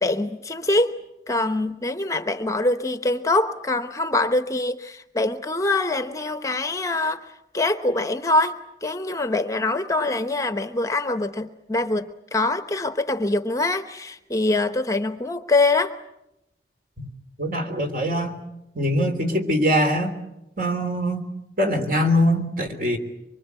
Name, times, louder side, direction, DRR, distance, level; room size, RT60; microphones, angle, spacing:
voice 1, 0.0-0.9 1.3-7.2 7.5-8.5 8.8-15.9, left 2 dB, 20° left, 10 dB, 0.9 m, -24 dB
voice 2, 17.4-18.3 18.8-20.1 20.6-21.2 21.6-23.0, equal, 50° right, 5 dB, 3.4 m, -22 dB
24.5 x 24.5 x 8.1 m, 0.90 s
head